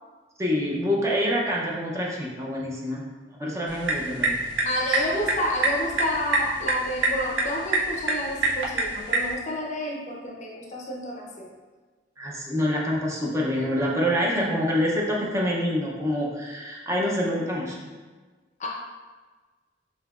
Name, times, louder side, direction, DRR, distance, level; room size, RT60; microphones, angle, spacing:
voice 1, 0.4-3.0 3.4-4.4 12.2-17.8, equal, 15° right, -3 dB, 0.5 m, -26 dB
sound 1, 3.7-9.3, right 2 dB, 70° right, 0.6 m, -27 dB
voice 2, 4.6-11.5 18.6-18.7, left 1 dB, 40° left, -1 dB, 0.6 m, -30 dB
5.5 x 2.8 x 2.4 m, 1.4 s
head